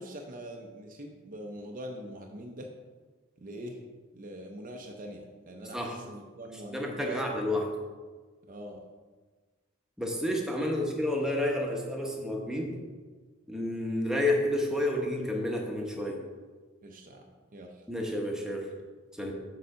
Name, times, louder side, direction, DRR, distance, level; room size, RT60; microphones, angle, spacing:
voice 1, 0.0-2.7 3.4-3.8 4.1-7.7 8.5-8.8 16.8-17.8, right 1 dB, 40° right, 2 dB, 0.6 m, -43 dB
voice 2, 6.7-7.6 10.0-12.7 13.5-16.2 17.9-18.7 19.2-19.3, left 1 dB, 5° right, 0 dB, 1.0 m, -30 dB
6.8 x 4.0 x 6.4 m, 1.4 s
head